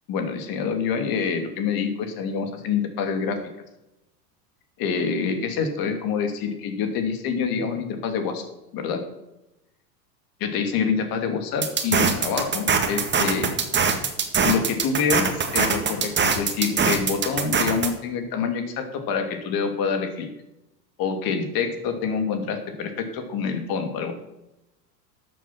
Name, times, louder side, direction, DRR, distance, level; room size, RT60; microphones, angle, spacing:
voice 1, 0.1-3.4 4.8-8.4 8.7-9.0 10.4-13.5 14.4-20.3 21.0-24.1, left 6 dB, 45° left, 6 dB, 2.6 m, -26 dB
sound 1, 11.6-17.9, right 5 dB, 20° right, 1.9 m, -22 dB
13.0 x 7.9 x 6.0 m, 0.91 s
hypercardioid pair, 95°, 50 cm